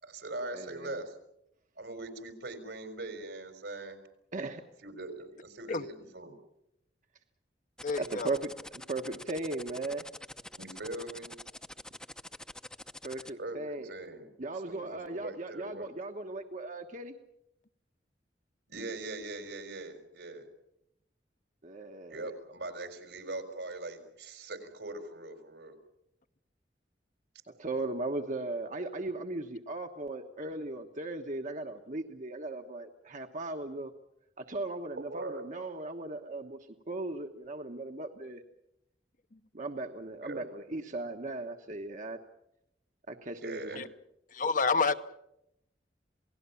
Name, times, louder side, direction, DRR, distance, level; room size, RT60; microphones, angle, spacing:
voice 1, 0.0-1.2 1.8-4.0 4.8-6.4 10.6-11.3 13.4-14.3 14.7-15.9 18.7-20.5 22.1-25.8 35.0-35.5 40.2-40.5 43.4-43.8, right 2 dB, 80° right, 8 dB, 4.5 m, -41 dB
voice 2, 0.5-1.0 4.3-4.6 8.0-8.5 8.9-10.1 13.0-13.9 14.4-17.2 21.6-22.3 27.5-33.9 34.4-36.6 36.9-38.4 39.5-42.2 43.1-43.9, right 2 dB, 45° right, 5 dB, 1.3 m, -37 dB
voice 3, 7.8-8.3 43.8-43.9 44.3-45.0, left 4 dB, 50° left, 10 dB, 1.0 m, -28 dB
sound 1, 7.8-13.3, left 1 dB, 5° left, 0.8 m, -45 dB
28.0 x 18.5 x 7.1 m, 0.81 s
head